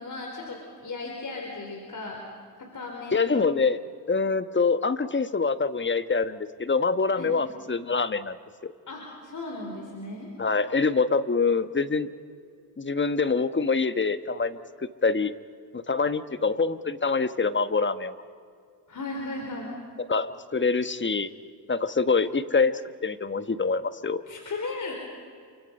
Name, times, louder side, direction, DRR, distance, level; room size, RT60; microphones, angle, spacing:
voice 1, 0.0-2.2 2.6-3.3 7.1-7.3 8.9-10.3 18.9-19.7 22.2-22.3 24.3-24.9, left 3 dB, 45° left, 1 dB, 4.7 m, -36 dB
voice 2, 3.1-3.8 4.1-8.4 8.6-8.7 10.4-12.1 12.8-15.3 15.7-18.1 20.1-21.3 21.7-22.7 23.0-24.2, left 4 dB, 25° left, 12 dB, 1.3 m, -25 dB
28.0 x 25.0 x 5.5 m, 2.1 s
supercardioid pair, 65°, 44 cm